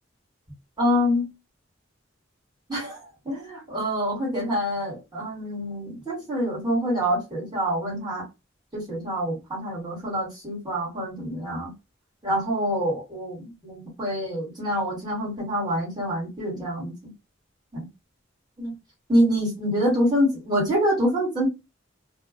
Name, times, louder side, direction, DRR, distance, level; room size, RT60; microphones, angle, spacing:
voice 1, 0.8-1.3 2.7-8.3 8.7-11.7 12.2-17.1 17.7-17.9 18.6-18.7 19.1-21.5, equal, 20° right, 1.4 m, -26 dB
2.2 x 2.2 x 2.5 m
head